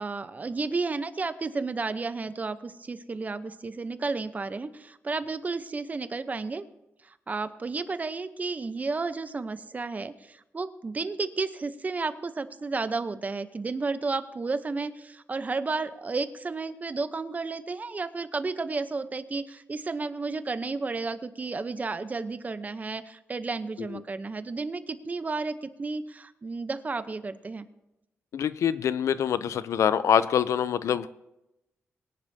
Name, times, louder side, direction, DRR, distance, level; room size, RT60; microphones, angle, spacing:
voice 1, 0.0-6.7 7.0-27.7, right 3 dB, 30° right, 12 dB, 0.8 m, -32 dB
voice 2, 28.3-31.1, left 8 dB, 90° left, 16 dB, 0.5 m, -25 dB
22.0 x 10.5 x 2.8 m, 0.91 s
cardioid pair, 105°, 5 cm